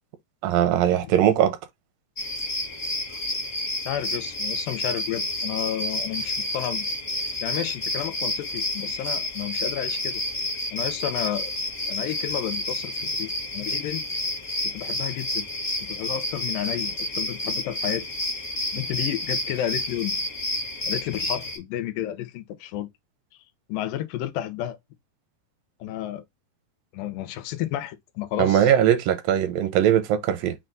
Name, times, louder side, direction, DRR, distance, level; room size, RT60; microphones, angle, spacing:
voice 1, 0.4-1.6 28.4-30.6, right 10 dB, 85° right, 2.4 m, -20 dB
sound 1, 2.2-21.6, left 1 dB, 55° left, 0.8 m, -30 dB
voice 2, 3.9-6.9 7.2-10.2 10.7-11.5 11.9-14.1 14.6-15.5 15.8-18.1 18.7-20.2 20.8-22.9 23.7-24.8 25.8-26.2 26.9-28.7, left 12 dB, 85° left, 2.3 m, -31 dB
6.0 x 2.3 x 3.8 m
omnidirectional pair, 3.9 m